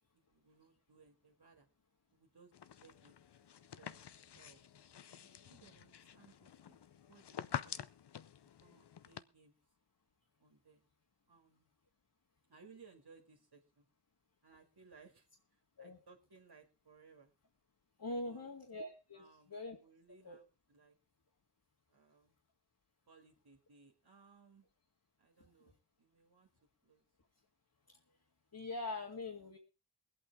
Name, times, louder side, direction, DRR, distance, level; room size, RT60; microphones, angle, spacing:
voice 1, 0.1-1.7 2.1-3.2 3.8-4.0 4.3-4.6 5.0-6.8 7.1-7.8 8.6-9.6 10.4-10.9 11.3-11.7 12.5-13.9 14.4-17.3 18.2-18.5 19.1-19.5 19.8-21.0 21.9-22.3 23.1-24.7 25.2-26.5 26.8-27.0, right 5 dB, 65° right, 1 dB, 2.3 m, -63 dB
sound 1, 2.5-9.2, left 9 dB, 70° left, 0.7 m, -48 dB
voice 2, 18.0-19.8 20.2-20.4 27.9-28.0 28.5-29.6, left 2 dB, 55° left, -1 dB, 2.1 m, -43 dB
23.0 x 8.6 x 3.6 m, 0.30 s
wide cardioid pair, 85°, 41 cm